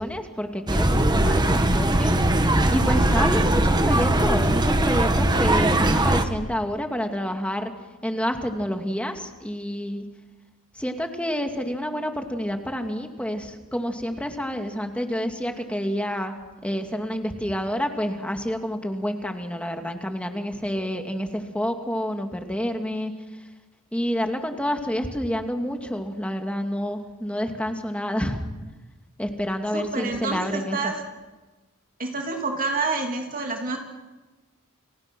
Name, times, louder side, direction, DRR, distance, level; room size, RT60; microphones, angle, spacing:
voice 1, 0.0-2.1 2.7-7.7 8.0-10.0 10.8-23.1 23.9-28.4 29.2-30.8, equal, 5° left, 4 dB, 2.4 m, -28 dB
sound 1, 0.7-6.2, right 1 dB, 20° right, 1.6 m, -20 dB
voice 2, 29.7-31.0 32.0-33.8, right 3 dB, 40° right, 2 dB, 3.0 m, -28 dB
30.0 x 30.0 x 6.2 m, 1.2 s
head